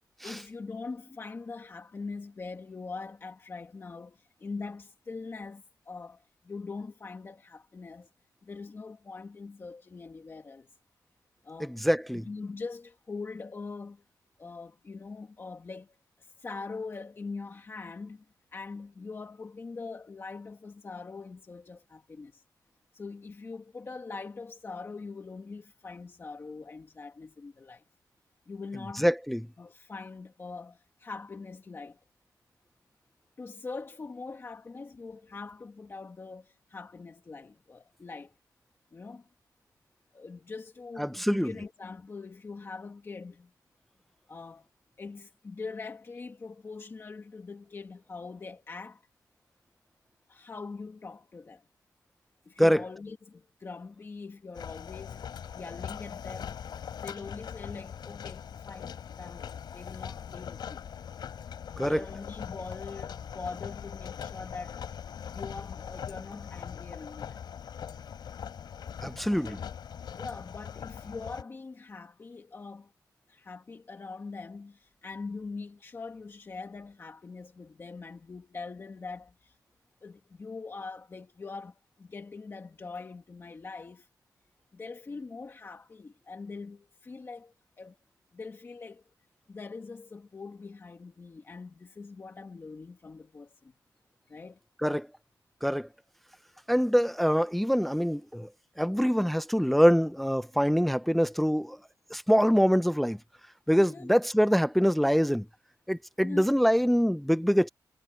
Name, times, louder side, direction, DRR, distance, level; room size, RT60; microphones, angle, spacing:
voice 1, 0.2-8.1 8.4-10.7 11.4-11.8 12.2-14.0 14.4-18.2 18.5-22.4 22.9-27.8 28.5-29.1 29.6-32.0 33.4-38.3 38.9-39.2 40.1-43.5 44.3-44.7 45.0-49.0 50.3-51.6 52.5-56.6 57.0-60.8 61.8-64.8 65.3-67.4 69.2-69.7 70.2-72.9 73.3-79.6 80.0-84.1 84.7-88.0 88.3-89.0 89.5-93.7 94.3-94.6 103.9-104.1 106.2-106.5, left 4 dB, 30° left, 1.8 m, -42 dB
voice 2, 11.6-12.3 29.0-29.4 41.0-41.5 52.6-52.8 61.8-62.0 69.0-69.6 94.8-95.1 95.6-95.9 96.7-98.5 98.8-101.8 102.1-103.2 103.7-105.4 105.9-107.7, equal, ahead, 0.5 m, -24 dB
sound 1, 54.5-71.4, left 8 dB, 85° left, 3.3 m, -41 dB
wide cardioid pair, 160°, 7 cm